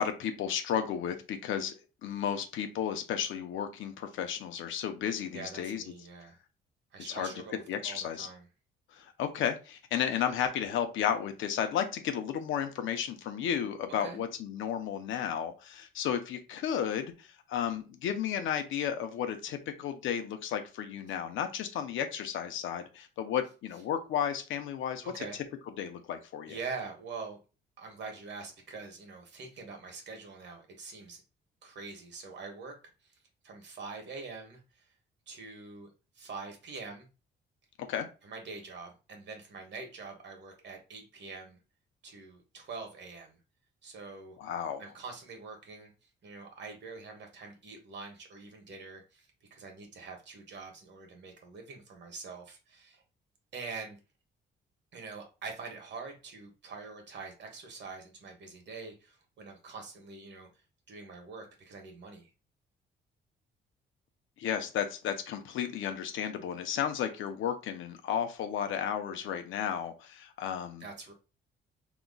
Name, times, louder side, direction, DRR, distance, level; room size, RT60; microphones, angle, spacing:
voice 1, 0.0-1.7 2.0-5.8 7.1-7.3 7.7-8.3 8.9-25.0 25.8-26.6 37.9-38.1 44.4-44.8 64.4-70.8, left 9 dB, 80° left, 7 dB, 0.7 m, -33 dB
voice 2, 5.3-6.4 6.9-8.5 14.0-14.2 25.0-25.4 26.5-27.4 27.8-31.2 31.6-32.7 33.0-33.2 33.4-34.9 35.3-35.9 36.1-37.1 38.2-41.6 42.0-43.4 43.8-44.5 44.8-45.9 46.2-53.0 53.5-54.0 54.9-62.3 70.8-71.1, right 4 dB, 65° right, 3 dB, 1.2 m, -44 dB
3.8 x 3.0 x 2.3 m, 0.31 s
cardioid pair, 90°, 20 cm